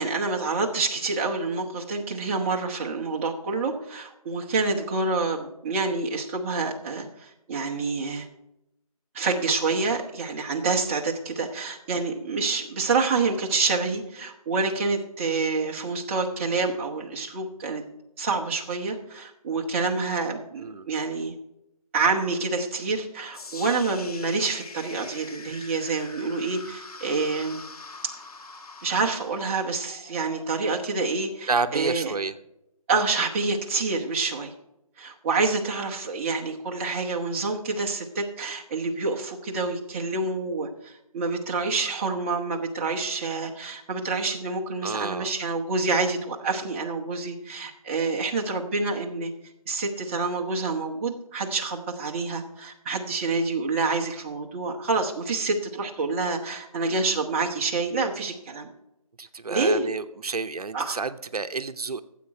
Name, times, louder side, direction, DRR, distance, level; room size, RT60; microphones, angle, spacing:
voice 1, 0.0-8.3 9.1-17.8 18.2-21.3 21.9-27.6 28.0-28.1 28.8-32.1 32.9-34.5 35.0-49.3 49.7-58.7 59.5-59.9 60.7-61.0, right 3 dB, 20° right, -1 dB, 1.0 m, -27 dB
voice 2, 20.6-20.9 31.5-32.3 44.8-45.3 59.2-62.0, right 4 dB, 80° right, 11 dB, 0.7 m, -30 dB
sound 1, 23.3-31.4, left 3 dB, 75° left, 1.5 m, -44 dB
14.0 x 7.7 x 4.8 m, 0.87 s
figure-of-eight pair, 160°, 19 cm